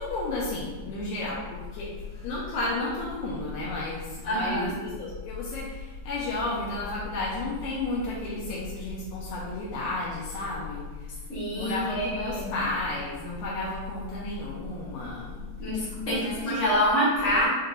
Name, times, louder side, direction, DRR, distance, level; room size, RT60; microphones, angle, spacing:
voice 1, 0.0-11.1 11.5-15.5 16.1-16.6, left 2 dB, 80° left, -6 dB, 1.9 m, -32 dB
voice 2, 4.3-4.7 11.3-12.5 15.6-17.5, equal, 55° left, -8 dB, 0.8 m, -26 dB
5.3 x 2.5 x 2.7 m, 1.3 s
omnidirectional pair, 3.3 m